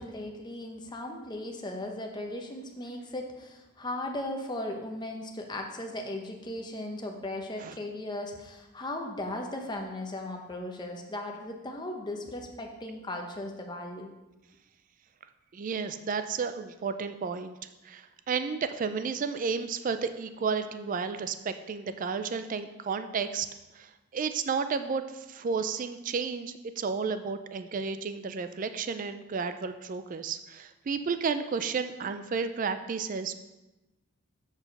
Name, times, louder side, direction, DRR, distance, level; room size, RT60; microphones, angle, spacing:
voice 1, 0.0-14.1, left 1 dB, 20° left, 2 dB, 0.8 m, -37 dB
voice 2, 15.5-17.6 17.8-23.5 23.7-33.3, right 5 dB, 40° right, 10 dB, 0.3 m, -32 dB
7.8 x 4.7 x 5.3 m, 1.0 s
head